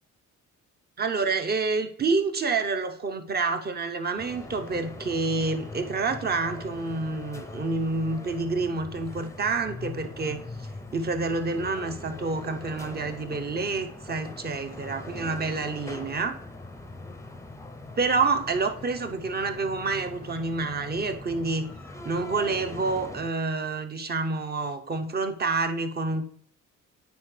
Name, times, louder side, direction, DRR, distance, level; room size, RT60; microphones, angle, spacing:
voice 1, 1.0-10.4 10.9-16.4 18.0-21.7 22.0-26.2, right 3 dB, 30° right, 7 dB, 0.9 m, -28 dB
sound 1, 4.2-23.3, left 2 dB, 10° left, 0.6 m, -41 dB
9.6 x 4.4 x 3.3 m, 0.64 s
cardioid pair, 90°, 30 cm